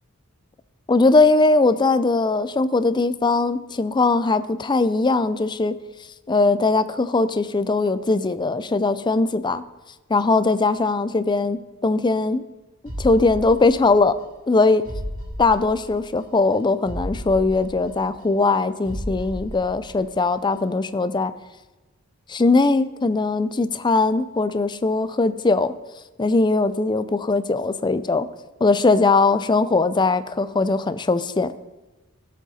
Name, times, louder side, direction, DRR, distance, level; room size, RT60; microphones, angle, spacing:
voice 1, 0.9-5.7 6.3-9.6 10.1-12.4 13.0-14.1 14.5-14.8 15.4-21.3 22.3-25.7 26.2-28.3 28.6-31.5, left 3 dB, 20° left, 13 dB, 0.4 m, -20 dB
sound 1, 12.9-14.2 14.5-14.6 14.9-16.2 16.5-16.6 16.9-18.6 18.9-20.2 20.5-20.6, equal, 85° right, 2.3 m, -34 dB
17.0 x 7.4 x 4.2 m, 1.1 s
head